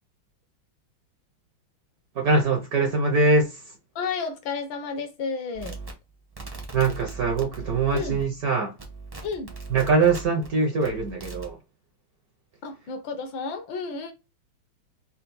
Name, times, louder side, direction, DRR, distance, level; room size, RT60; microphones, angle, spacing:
voice 1, 2.2-3.6 6.7-8.7 9.7-11.6, right 3 dB, 65° right, 0.9 m, -22 dB
voice 2, 3.9-5.8 7.9-8.2 9.2-9.5 12.6-14.1, left 5 dB, 70° left, 1.5 m, -32 dB
sound 1, 5.5-8.5 8.8-10.5 10.8-11.5, right 3 dB, 40° right, 0.3 m, -39 dB
4.3 x 2.1 x 4.0 m
omnidirectional pair, 2.3 m